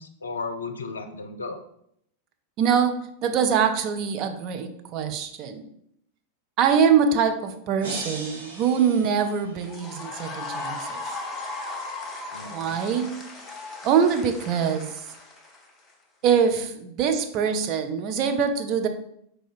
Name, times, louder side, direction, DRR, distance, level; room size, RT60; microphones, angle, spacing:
voice 1, 0.0-1.6 12.3-12.8, left 4 dB, 75° left, 7 dB, 0.4 m, -35 dB
voice 2, 2.6-5.7 6.6-11.0 12.5-13.2 13.8-15.0 16.2-18.9, right 7 dB, 40° right, 6 dB, 0.5 m, -23 dB
sound 1, 7.8-9.9, right 2 dB, 55° right, 1.2 m, -38 dB
sound 2, 9.6-15.9, left 3 dB, 20° left, 0.7 m, -37 dB
4.6 x 2.2 x 4.2 m, 0.73 s
figure-of-eight pair, 90°, 0 cm